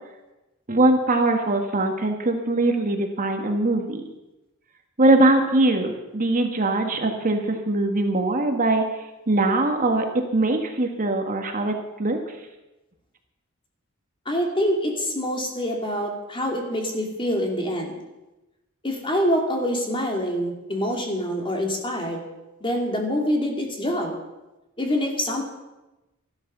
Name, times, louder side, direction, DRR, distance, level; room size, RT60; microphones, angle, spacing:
voice 1, 0.7-4.0 5.0-8.8 9.3-11.7 12.0-12.2, right 2 dB, 40° right, 5 dB, 1.5 m, -21 dB
voice 2, 14.3-18.0 18.8-22.2 22.6-24.1 24.8-25.4, equal, 25° left, 1 dB, 2.7 m, -25 dB
13.5 x 12.0 x 6.7 m, 1.0 s
head